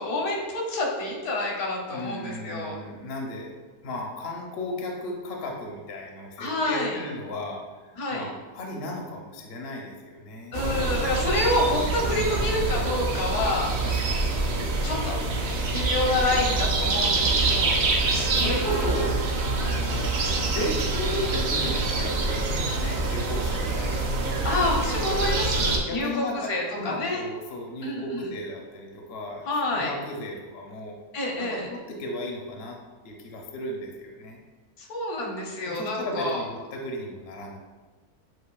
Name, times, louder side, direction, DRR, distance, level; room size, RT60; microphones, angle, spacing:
voice 1, 0.0-2.8 6.4-7.0 7.9-8.3 10.5-13.7 14.8-15.1 15.7-17.8 18.3-18.7 24.4-27.2 27.8-28.3 29.4-29.9 31.1-31.7 34.8-36.4, left 2 dB, 75° left, -1 dB, 1.3 m, -28 dB
voice 2, 1.9-3.5 3.8-10.6 12.0-12.6 13.8-14.3 17.2-19.2 19.6-20.1 20.5-24.3 25.9-31.0 31.4-32.8 33.0-34.4 35.6-37.6, left 1 dB, 55° left, 0 dB, 0.7 m, -35 dB
sound 1, 10.5-25.8, right 3 dB, 65° right, 1.0 m, -26 dB
7.7 x 2.6 x 2.3 m, 1.3 s
omnidirectional pair, 1.6 m